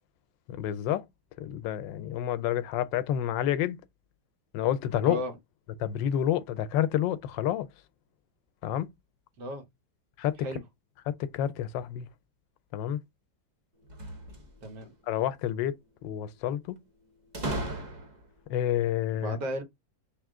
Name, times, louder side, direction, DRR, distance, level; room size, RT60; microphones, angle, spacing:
voice 1, 0.5-1.1 1.4-3.8 4.5-5.2 5.8-7.7 8.6-8.9 10.2-10.4 11.1-12.1 12.7-13.0 15.1-15.7 16.0-16.8 18.5-19.4, left 11 dB, 85° left, 1.3 m, -29 dB
voice 2, 9.4-9.7 10.4-10.6 14.6-14.9 19.1-19.6, equal, 70° right, 1.7 m, -34 dB
sound 1, 13.8-14.9 17.3-18.4, right 1 dB, 45° right, 0.5 m, -36 dB
3.8 x 2.9 x 3.6 m
omnidirectional pair, 2.0 m